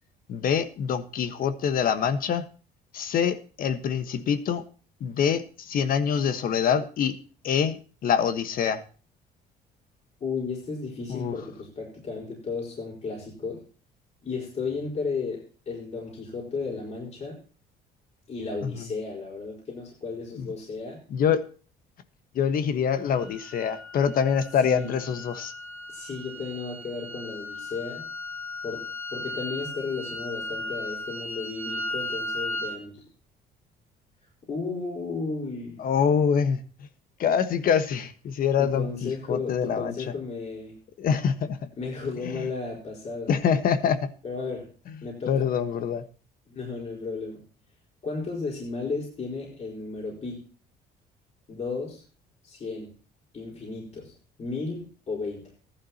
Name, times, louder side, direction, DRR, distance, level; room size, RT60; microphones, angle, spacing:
voice 1, 0.3-2.4 2.9-4.6 5.0-7.2 7.4-8.8 11.1-11.4 18.6-18.8 20.4-20.5 21.1-21.4 22.3-25.5 35.8-36.6 37.2-39.9 41.0-41.6 42.2-42.4 43.3-44.1 45.3-46.1, left 7 dB, 60° left, 11 dB, 1.3 m, -25 dB
voice 2, 10.2-13.6 14.2-17.4 18.3-21.0 24.6-24.9 25.9-28.1 28.6-33.0 34.5-35.8 38.6-40.7 41.8-43.3 44.2-44.7 45.0-45.5 46.5-47.4 48.0-50.4 51.5-52.0 52.4-52.9 53.3-55.5, left 4 dB, 40° left, -3 dB, 4.7 m, -34 dB
sound 1, 23.1-32.8, left 1 dB, 15° right, 4.0 m, -36 dB
15.0 x 11.5 x 2.9 m, 0.37 s
cardioid pair, 110°, 17 cm